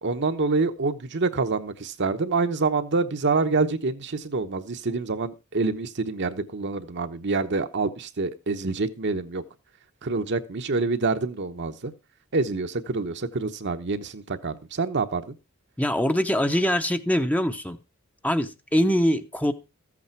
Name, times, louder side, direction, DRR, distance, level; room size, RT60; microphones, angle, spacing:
voice 1, 0.0-9.4 10.0-11.9 12.3-15.4, right 3 dB, 55° right, 8 dB, 1.0 m, -26 dB
voice 2, 15.8-17.8 18.2-19.5, equal, 5° left, 8 dB, 0.7 m, -23 dB
14.0 x 8.5 x 4.5 m, 0.29 s
head